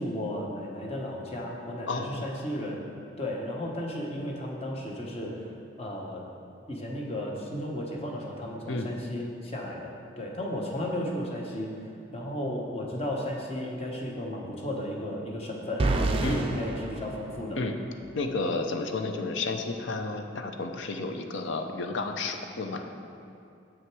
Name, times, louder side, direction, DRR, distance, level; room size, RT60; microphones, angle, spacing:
voice 1, 0.0-2.8 3.2-5.5 5.8-6.2 6.7-11.7 12.1-17.6, left 1 dB, 30° left, -1 dB, 0.9 m, -34 dB
voice 2, 1.9-2.3 8.7-9.0 16.2-16.5 17.6-17.8 18.1-22.8, left 3 dB, 70° left, 5 dB, 0.6 m, -31 dB
sound 1, 15.8-17.9, right 2 dB, 30° right, 0.4 m, -29 dB
7.0 x 6.1 x 4.6 m, 2.5 s
head